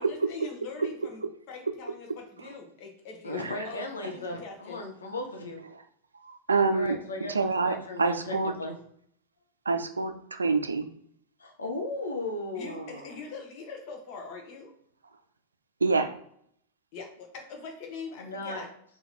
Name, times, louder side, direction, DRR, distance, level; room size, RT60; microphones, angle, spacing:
voice 1, 0.0-4.8 12.5-14.7 16.9-18.7, left 4 dB, 45° left, 2 dB, 1.2 m, -43 dB
voice 2, 3.2-5.6 6.7-7.3 7.6-8.7 11.4-13.2 18.2-18.7, left 2 dB, 75° left, 2 dB, 0.9 m, -36 dB
voice 3, 6.2-7.0 7.3-8.5 9.7-10.9 15.8-16.1, right 4 dB, 75° right, 8 dB, 0.4 m, -26 dB
4.0 x 2.9 x 4.4 m, 0.69 s
figure-of-eight pair, 90°, 0 cm